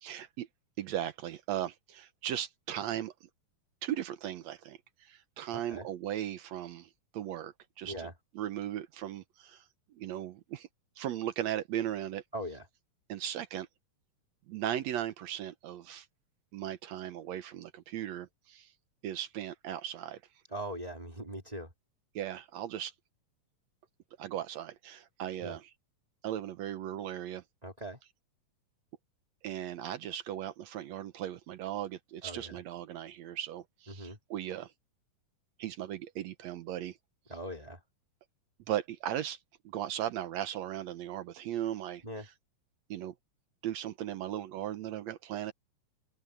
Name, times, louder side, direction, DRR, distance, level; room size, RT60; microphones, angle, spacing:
voice 1, 0.0-0.5 0.8-3.1 3.8-8.1 8.3-9.6 9.9-10.7 11.0-12.2 13.1-13.7 14.5-16.1 16.5-18.7 19.0-20.2 22.2-22.9 24.2-25.7 26.2-27.4 29.4-34.7 35.6-37.0 38.7-39.4 39.7-42.3 42.9-43.1 43.6-45.5, right 11 dB, 70° right, 1.7 m, -37 dB
voice 2, 12.3-12.6 20.5-21.7 25.4-25.5 27.6-28.0 32.2-32.6 33.9-34.2 37.3-37.8 42.0-42.3, right 1 dB, 10° right, 2.4 m, -40 dB
open air
omnidirectional pair, 3.9 m